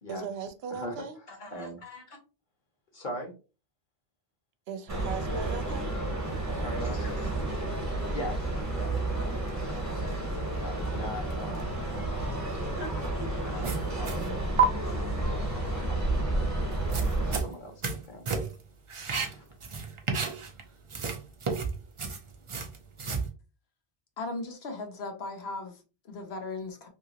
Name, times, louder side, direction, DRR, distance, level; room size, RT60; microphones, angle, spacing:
voice 1, 0.1-1.2 4.7-5.9, right 7 dB, 75° right, 0.8 m, -38 dB
voice 2, 0.7-2.2 2.9-3.3 6.5-7.3 8.1-8.4 8.7-8.9 9.6-9.7 10.5-11.8 12.4-12.8 13.5-14.5 15.1-16.7 17.0-18.5 19.3-19.5, left 1 dB, 50° left, 1.2 m, -41 dB
sound 1, 4.9-17.4, right 2 dB, 20° right, 0.8 m, -31 dB
sound 2, 13.6-14.3 14.6-14.7 16.7-18.0 18.3-18.6 18.9-20.6 20.9-23.3, right 5 dB, 40° right, 0.4 m, -30 dB
voice 3, 24.2-26.9, left 3 dB, 75° left, 1.0 m, -37 dB
2.9 x 2.8 x 2.8 m
omnidirectional pair, 1.1 m